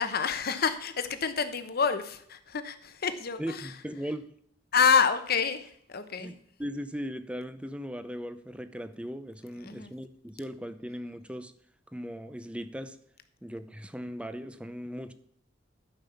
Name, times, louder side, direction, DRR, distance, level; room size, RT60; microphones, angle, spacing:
voice 1, 0.0-3.7 4.7-6.3 9.6-9.9, left 6 dB, 55° left, 1.0 m, -28 dB
voice 2, 3.4-4.3 6.2-11.5 11.9-13.0 13.4-15.1, equal, 5° right, 0.7 m, -38 dB
12.5 x 5.6 x 6.9 m
head